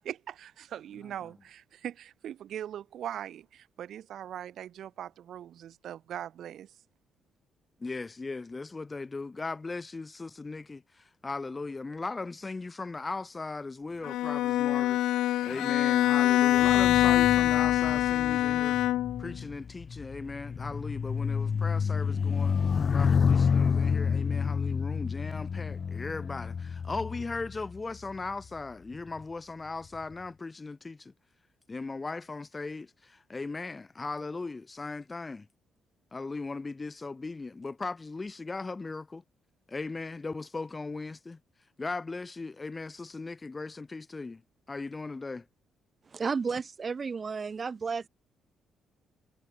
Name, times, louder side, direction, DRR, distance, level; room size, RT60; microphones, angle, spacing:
voice 1, 0.0-6.7, right 10 dB, 70° right, 2.4 m, -41 dB
voice 2, 7.8-15.0 15.4-18.8 19.2-22.6 22.9-31.1 31.7-35.5 36.1-39.2 39.7-41.4 41.8-44.4 44.7-45.4, left 3 dB, 25° left, 1.2 m, -38 dB
Bowed string instrument, 14.0-19.3, left 14 dB, 85° left, 0.5 m, -24 dB
sound 1, 16.5-28.2 28.9-29.2, left 6 dB, 45° left, 1.2 m, -29 dB
voice 3, 46.1-48.1, right 5 dB, 35° right, 1.6 m, -32 dB
cardioid pair, 90°, 0 cm